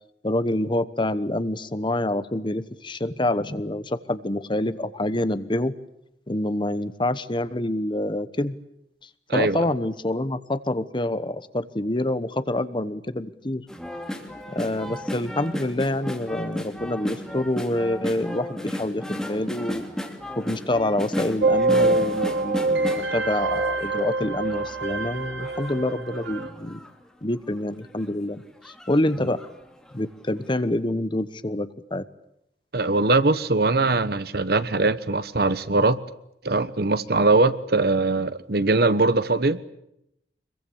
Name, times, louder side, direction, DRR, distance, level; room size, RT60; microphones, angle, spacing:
voice 1, 0.2-5.7 6.3-8.6 9.3-13.6 14.5-19.8 20.4-26.8 27.2-29.4 29.9-32.0, left 1 dB, 30° left, 13 dB, 1.1 m, -27 dB
voice 2, 9.3-9.7 32.7-36.0 36.4-39.6, right 3 dB, 60° right, 14 dB, 1.2 m, -21 dB
sound 1, 13.7-24.0 24.5-26.9 27.4-27.5 27.8-28.1 28.6-29.6 29.9-30.0, left 1 dB, 5° left, 2.8 m, -34 dB
sound 2, 21.4-26.5, right 3 dB, 85° right, 2.5 m, -25 dB
25.5 x 22.5 x 8.7 m, 0.80 s
head